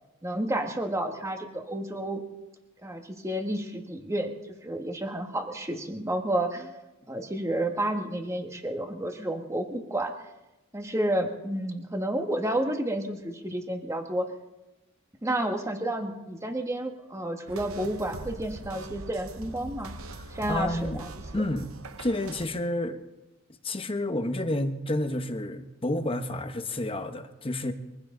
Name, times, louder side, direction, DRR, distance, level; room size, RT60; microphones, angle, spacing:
voice 1, 0.2-2.2 2.8-4.3 4.6-6.7 7.1-10.2 10.7-14.3 15.2-19.9 20.3-21.5, right 1 dB, 15° right, 1.5 m, -30 dB
sound 1, 17.5-22.5, right 2 dB, 75° right, 0.9 m, -42 dB
voice 2, 20.1-21.1 21.3-21.7 22.0-23.0 23.6-27.7, left 1 dB, 25° left, 1.0 m, -30 dB
23.0 x 15.5 x 3.9 m
head